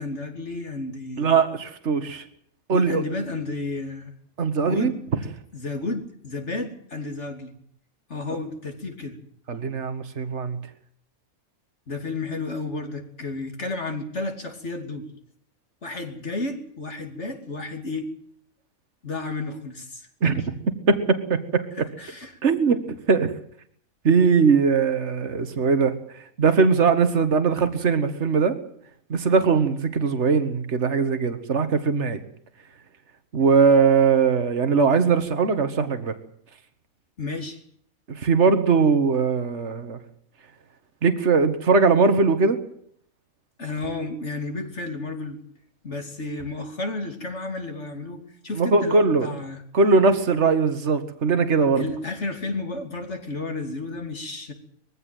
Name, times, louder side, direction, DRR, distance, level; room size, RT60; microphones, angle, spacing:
voice 1, 0.0-1.3 2.7-4.1 4.6-5.0 5.5-7.6 8.1-9.2 11.9-15.1 15.8-18.1 19.0-20.5 22.0-22.3 37.2-37.6 43.6-45.4 45.8-49.6 51.8-54.5, left 3 dB, 50° left, 4 dB, 3.3 m, -32 dB
voice 2, 1.2-2.2 2.7-3.0 4.4-4.9 9.5-10.6 20.2-20.3 20.9-21.9 22.4-23.3 24.0-28.6 29.1-32.2 33.3-36.2 38.1-40.0 41.0-42.6 48.6-49.4 49.7-51.8, right 5 dB, 55° right, 9 dB, 2.0 m, -20 dB
21.5 x 15.5 x 9.3 m, 0.64 s
omnidirectional pair, 1.5 m